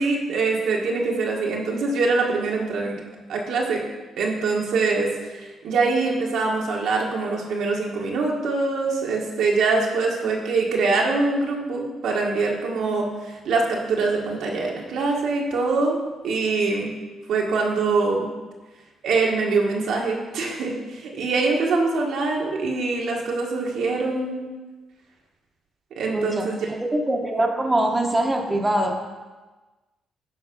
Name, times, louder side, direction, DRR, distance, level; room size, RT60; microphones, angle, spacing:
voice 1, 0.0-3.0 3.3-3.8 4.2-16.0 16.2-16.9 17.3-18.3 19.0-24.4 25.9-26.7, right 3 dB, 75° right, -1 dB, 1.6 m, -24 dB
voice 2, 26.1-26.5 26.8-29.0, right 1 dB, 15° right, 1 dB, 1.2 m, -23 dB
11.5 x 4.2 x 5.4 m, 1.2 s
cardioid pair, 90°, 0 cm